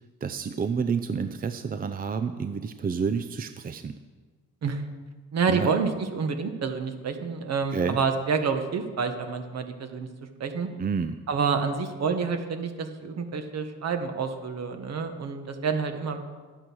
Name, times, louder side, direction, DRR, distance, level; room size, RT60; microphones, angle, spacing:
voice 1, 0.2-4.0 5.5-5.7 7.7-8.0 10.8-11.1, right 5 dB, 30° right, 9 dB, 0.6 m, -29 dB
voice 2, 5.3-10.1 10.4-10.7 11.3-16.2, right 5 dB, 60° right, 7 dB, 1.5 m, -28 dB
12.0 x 8.9 x 6.3 m, 1.4 s
cardioid pair, 90°, 30 cm